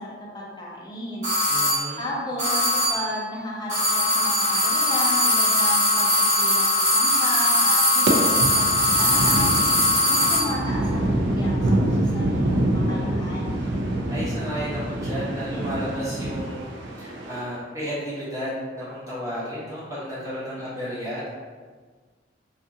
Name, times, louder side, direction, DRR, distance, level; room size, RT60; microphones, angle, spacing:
voice 1, 0.0-1.3 1.6-9.6 10.1-13.6, left 1 dB, 20° left, -4 dB, 0.5 m, -34 dB
sound 1, 1.2-1.9 2.4-3.1 3.7-10.6, left 1 dB, 35° right, 1.2 m, -21 dB
voice 2, 1.5-2.0 14.1-16.7 17.0-21.3, equal, 15° right, -11 dB, 1.0 m, -32 dB
sound 2, 8.1-17.4, right 1 dB, 60° right, 0.4 m, -26 dB
2.6 x 2.4 x 2.6 m, 1.5 s
head